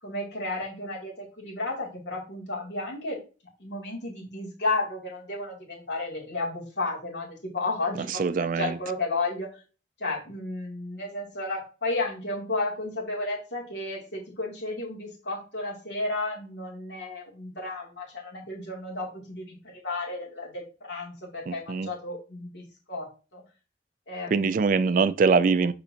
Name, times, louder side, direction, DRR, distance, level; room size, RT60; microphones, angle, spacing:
voice 1, 0.0-3.2 3.6-8.1 8.4-9.5 10.0-22.6 22.9-23.4 24.1-24.6, left 2 dB, 80° left, 2.8 m, -33 dB
voice 2, 8.1-8.8 21.5-21.9 24.3-25.7, right 5 dB, 50° right, 0.3 m, -23 dB
6.8 x 5.1 x 2.9 m
head